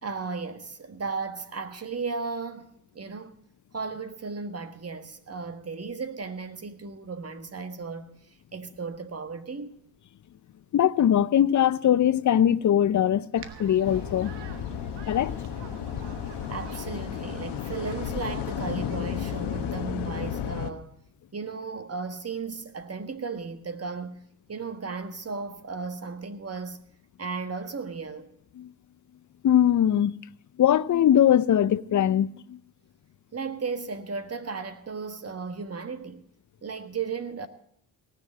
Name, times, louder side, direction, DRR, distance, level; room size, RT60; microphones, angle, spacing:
voice 1, 0.0-3.3 3.7-8.1 8.5-9.7 16.5-20.9 21.3-24.2 24.5-26.8 27.2-28.3 33.3-36.2 36.6-37.5, right 4 dB, 35° right, 1.6 m, -35 dB
voice 2, 10.7-14.3 15.1-15.4 28.6-28.7 29.4-30.1 30.6-32.6, left 10 dB, 45° left, 0.6 m, -21 dB
sound 1, 13.3-19.8, right 8 dB, 75° right, 1.2 m, -45 dB
sound 2, 13.8-20.7, left 10 dB, 75° left, 1.1 m, -33 dB
18.0 x 7.1 x 7.5 m
supercardioid pair, 50°, 41 cm